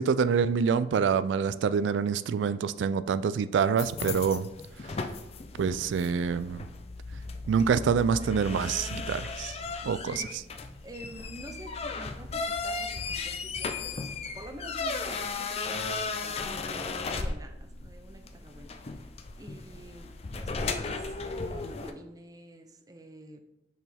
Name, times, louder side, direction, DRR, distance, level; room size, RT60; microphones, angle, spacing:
voice 1, 0.0-4.5 4.8-5.1 5.6-6.7 7.5-9.6 9.9-10.2, right 6 dB, 85° right, 0.3 m, -26 dB
sound 1, 3.8-21.9, left 4 dB, 35° left, 0.4 m, -36 dB
voice 2, 9.8-10.3 10.8-19.1 19.4-23.4, right 1 dB, 20° right, 0.5 m, -48 dB
6.0 x 4.6 x 3.4 m
head